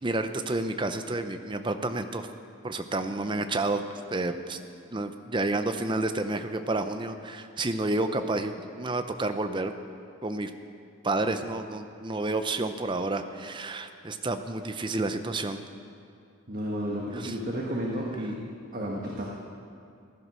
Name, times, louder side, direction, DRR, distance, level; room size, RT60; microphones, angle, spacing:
voice 1, 0.0-2.3 2.6-3.8 4.1-4.6 4.9-9.7 10.2-10.5 11.0-15.6 17.1-17.4, right 2 dB, 20° right, 8 dB, 0.6 m, -30 dB
voice 2, 16.5-18.4 18.7-19.2, equal, 40° right, -2 dB, 1.4 m, -32 dB
15.5 x 11.0 x 6.2 m, 2.5 s
head